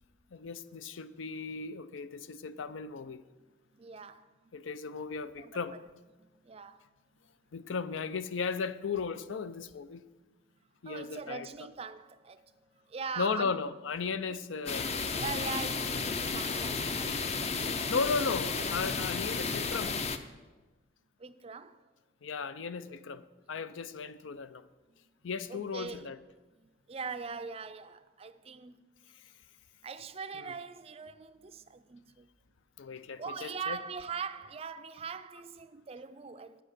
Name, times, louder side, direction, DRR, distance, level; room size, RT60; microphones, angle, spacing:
voice 1, 0.3-3.2 4.5-5.7 7.5-10.0 10.8-11.5 13.2-14.9 17.9-20.0 22.2-23.2 23.5-24.6 25.2-26.2 32.8-33.8, left 5 dB, 85° left, 0.5 m, -35 dB
voice 2, 3.7-4.5 5.4-5.8 6.2-6.8 10.8-13.6 14.3-14.5 15.2-17.3 19.2-19.3 21.2-21.8 24.9-25.0 25.5-26.1 26.9-28.8 29.8-32.3 33.2-36.6, right 5 dB, 30° right, 0.4 m, -42 dB
sound 1, 14.7-20.2, left 4 dB, 35° left, 0.5 m, -33 dB
9.1 x 7.7 x 6.6 m
head